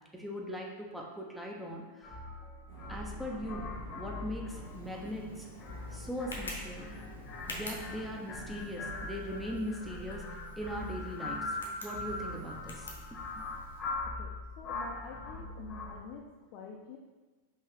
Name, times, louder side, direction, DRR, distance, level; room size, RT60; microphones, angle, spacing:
voice 1, 0.1-2.2 2.9-5.5 5.9-6.9 7.5-10.3 10.6-13.5, equal, ahead, -1 dB, 0.7 m, -40 dB
sound 1, 2.0-16.0, left 2 dB, 25° left, 1.0 m, -41 dB
sound 2, 2.7-8.9, right 1 dB, 55° right, 1.4 m, -51 dB
Tick, 4.6-13.8, left 2 dB, 70° left, 0.8 m, -49 dB
voice 2, 14.6-16.3 16.5-17.0, left 6 dB, 40° left, -2 dB, 0.5 m, -47 dB
5.5 x 2.7 x 3.4 m, 1.3 s
figure-of-eight pair, 90°, 0 cm